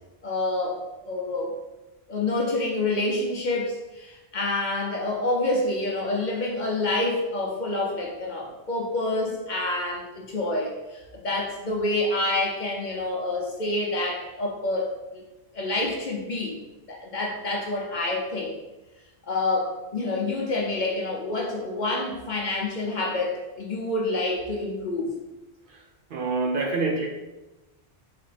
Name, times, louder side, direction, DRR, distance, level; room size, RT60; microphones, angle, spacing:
voice 1, 0.2-1.5 2.1-15.2 15.5-16.6 16.9-18.6 19.2-25.1, left 2 dB, 50° left, -1 dB, 0.7 m, -28 dB
voice 2, 26.1-27.1, right 3 dB, 60° right, 1 dB, 0.7 m, -26 dB
3.9 x 3.3 x 3.3 m, 1.1 s
omnidirectional pair, 1.1 m